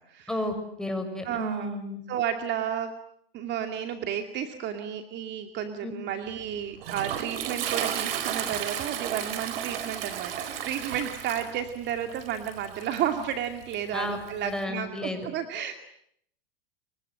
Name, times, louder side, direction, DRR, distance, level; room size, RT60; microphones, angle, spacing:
voice 1, 0.3-2.0 5.8-5.9 13.9-15.2, left 1 dB, ahead, 5 dB, 6.5 m, -32 dB
voice 2, 1.2-1.8 2.1-2.9 3.3-15.7, right 9 dB, 35° right, 7 dB, 2.5 m, -32 dB
Toilet flush, 6.3-14.6, right 9 dB, 70° right, 4.4 m, -34 dB
29.5 x 24.0 x 7.8 m, 0.69 s
hypercardioid pair, 120°, 30 cm